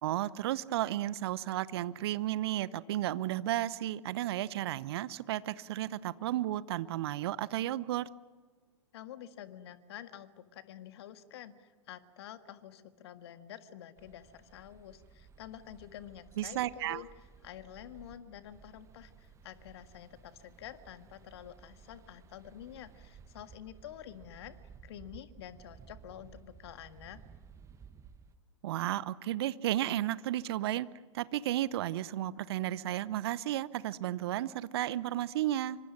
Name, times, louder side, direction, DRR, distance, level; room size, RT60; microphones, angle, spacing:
voice 1, 0.0-8.1 16.4-17.0 28.6-30.9 31.1-35.8, right 13 dB, 55° right, 18 dB, 0.9 m, -33 dB
voice 2, 8.9-17.1 17.4-27.2, left 11 dB, 55° left, 10 dB, 1.7 m, -49 dB
sound 1, 14.0-28.4, right 6 dB, 20° right, 1.5 m, -56 dB
27.0 x 24.5 x 6.1 m, 1.4 s
figure-of-eight pair, 100°, 16 cm